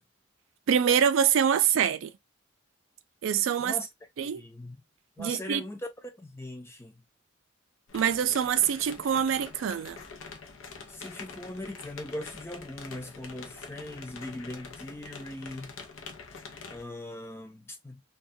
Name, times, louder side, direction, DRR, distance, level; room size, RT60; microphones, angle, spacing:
voice 1, 0.7-2.1 3.2-3.8 4.2-4.4 5.2-5.6 7.9-10.0, right 8 dB, 85° right, 0.3 m, -25 dB
voice 2, 4.2-4.8 5.2-7.0 10.9-15.8 16.7-18.0, left 1 dB, 10° left, 0.4 m, -40 dB
sound 1, 7.9-16.8, left 5 dB, 85° left, 0.6 m, -45 dB
2.3 x 2.2 x 2.6 m
head